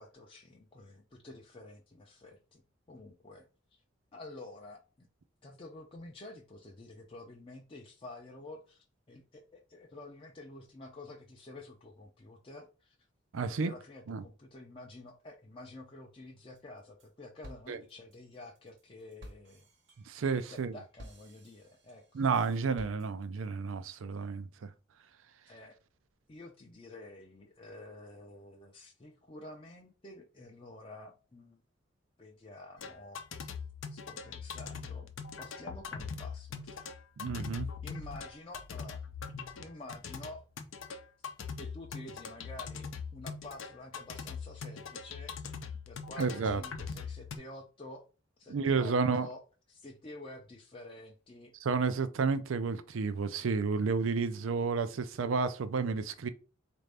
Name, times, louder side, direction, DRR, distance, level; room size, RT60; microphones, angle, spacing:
voice 1, 0.0-2.6 2.9-3.8 4.1-5.1 5.4-13.0 13.5-19.6 20.3-22.2 25.5-25.8 26.3-31.6 32.2-33.2 33.9-35.1 35.4-36.9 37.8-39.2 39.6-40.5 41.6-45.3 45.9-48.0 48.4-49.4 49.7-51.5, left 2 dB, 25° left, 0.4 m, -49 dB
voice 2, 13.3-13.7 14.1-14.2 17.7-17.8 20.1-20.8 22.1-24.7 37.2-37.7 46.2-46.6 48.5-49.3 51.6-56.3, right 4 dB, 90° right, 0.5 m, -31 dB
sound 1, 16.6-17.1 17.4-23.5, equal, 60° right, 0.9 m, -54 dB
sound 2, 32.8-47.4, left 5 dB, 80° left, 0.5 m, -42 dB
4.2 x 2.6 x 3.3 m
head